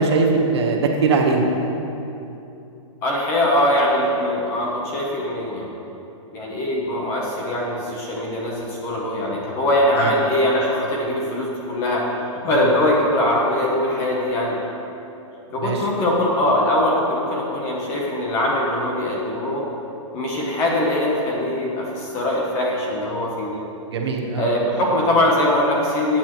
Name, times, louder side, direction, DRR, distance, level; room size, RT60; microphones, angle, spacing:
voice 1, 0.0-1.5 10.0-10.1 15.6-15.8 23.9-24.5, right 4 dB, 50° right, 1 dB, 1.2 m, -20 dB
voice 2, 3.0-5.7 6.3-12.0 12.4-14.6 15.5-19.6 20.1-23.6 24.4-26.2, left 1 dB, 15° left, -2 dB, 0.8 m, -22 dB
13.5 x 8.7 x 3.0 m, 2.9 s
hypercardioid pair, 180°, 17 cm